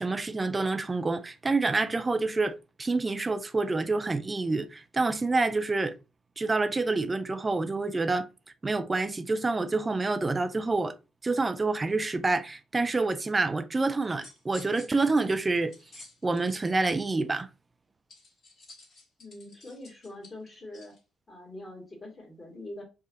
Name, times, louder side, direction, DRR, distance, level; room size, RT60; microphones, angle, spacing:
voice 1, 0.0-5.9 6.4-8.3 8.6-10.9 11.2-15.7 16.2-17.5, right 3 dB, 25° right, 0.4 m, -27 dB
sound 1, 13.9-16.6 18.1-21.0, left 2 dB, 50° left, 1.8 m, -52 dB
voice 2, 19.2-20.9 21.3-22.8, left 1 dB, 30° left, 1.6 m, -44 dB
4.5 x 2.5 x 2.6 m
hypercardioid pair, 45°, 0 cm